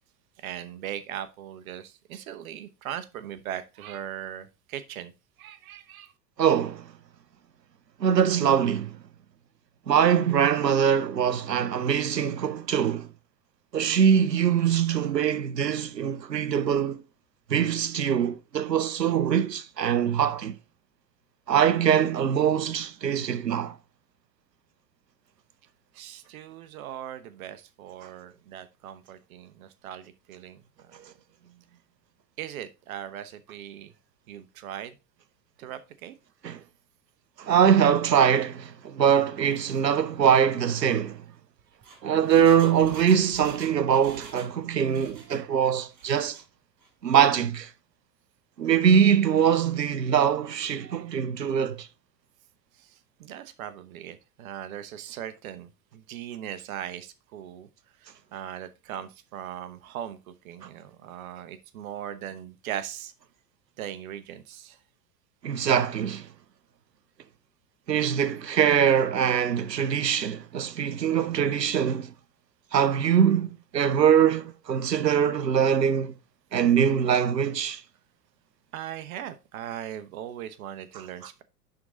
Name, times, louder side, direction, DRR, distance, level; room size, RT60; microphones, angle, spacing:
voice 1, 0.4-5.1 5.4-6.1 25.9-31.0 32.4-33.9 34.3-34.9 35.6-36.1 52.8-57.7 58.3-63.1 63.8-64.8 78.7-81.4, right 10 dB, 60° right, 0.9 m, -39 dB
voice 2, 6.4-6.9 8.0-9.0 9.9-13.1 13.7-17.0 17.5-20.5 21.5-23.8 28.0-28.1 36.4-36.6 37.4-41.2 42.0-46.4 47.0-47.7 48.6-51.9 65.4-66.3 67.9-72.1 72.7-76.1 76.5-77.8, right 8 dB, 85° right, 0.7 m, -23 dB
Engine, 41.6-44.6 44.8-45.4 45.9-46.4 46.8-46.9, right 4 dB, 40° right, 3.5 m, -47 dB
10.5 x 3.8 x 3.7 m
figure-of-eight pair, 85°, 48 cm